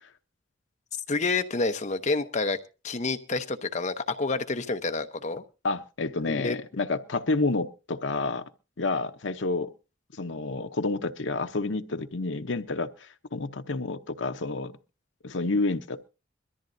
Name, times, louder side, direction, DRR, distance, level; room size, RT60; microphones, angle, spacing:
voice 1, 1.1-2.6 2.8-5.4 6.3-6.6, left 3 dB, 40° left, 0.9 m, -28 dB
voice 2, 5.6-8.4 8.8-9.7 10.2-14.7 15.2-16.1, left 3 dB, 75° left, 0.9 m, -29 dB
22.0 x 14.0 x 2.7 m
head